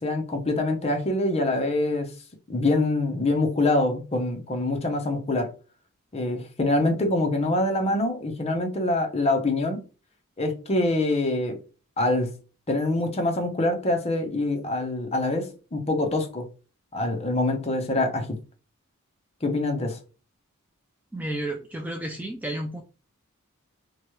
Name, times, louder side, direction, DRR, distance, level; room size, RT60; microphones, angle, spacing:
voice 1, 0.0-2.1 2.5-5.5 6.1-9.8 10.4-11.6 12.0-12.4 12.7-16.5 16.9-18.4 19.4-20.0, left 2 dB, 30° left, 0.7 m, -25 dB
voice 2, 21.1-22.8, right 1 dB, 10° right, 0.3 m, -32 dB
3.0 x 2.2 x 3.0 m
head